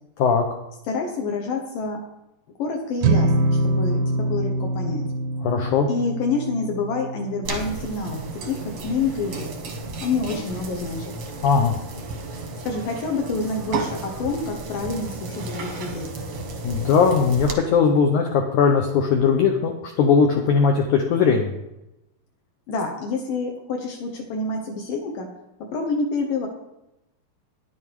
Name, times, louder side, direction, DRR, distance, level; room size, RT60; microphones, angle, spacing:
voice 1, 0.9-2.0 2.6-5.0 5.9-9.5 10.0-11.1 12.7-16.1 22.7-25.3 25.6-26.5, left 3 dB, 70° left, 2 dB, 2.3 m, -27 dB
sound 1, 3.0-9.4, right 2 dB, 85° right, 1.8 m, -25 dB
voice 2, 5.4-5.9 11.4-11.8 16.6-21.5, left 6 dB, 85° left, 3 dB, 1.7 m, -19 dB
sound 2, 7.4-17.5, right 3 dB, 65° right, 1.3 m, -33 dB
10.0 x 9.2 x 4.6 m, 0.92 s
omnidirectional pair, 4.7 m